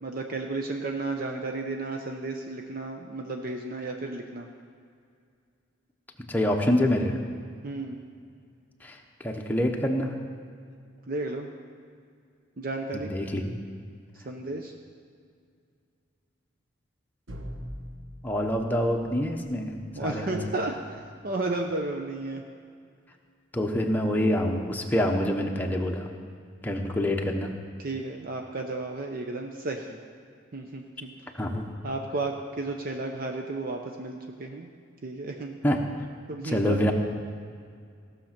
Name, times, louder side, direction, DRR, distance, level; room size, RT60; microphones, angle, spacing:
voice 1, 0.0-4.5 7.6-8.0 11.1-11.5 12.6-13.1 14.2-14.7 20.0-20.7 21.2-22.4 27.8-30.0 30.5-31.1 31.8-34.7 35.0-35.6 36.3-36.8, right 2 dB, 45° right, 3 dB, 0.7 m, -33 dB
voice 2, 6.3-7.2 8.8-9.0 9.2-10.1 12.9-13.6 18.2-19.7 20.0-20.4 23.5-26.1 26.6-27.5 31.3-31.7 35.6-35.8 36.4-36.9, left 1 dB, 10° left, 1 dB, 0.9 m, -26 dB
sound 1, 17.3-21.1, equal, 85° right, 1.4 m, -44 dB
16.5 x 6.5 x 5.9 m, 2.2 s
head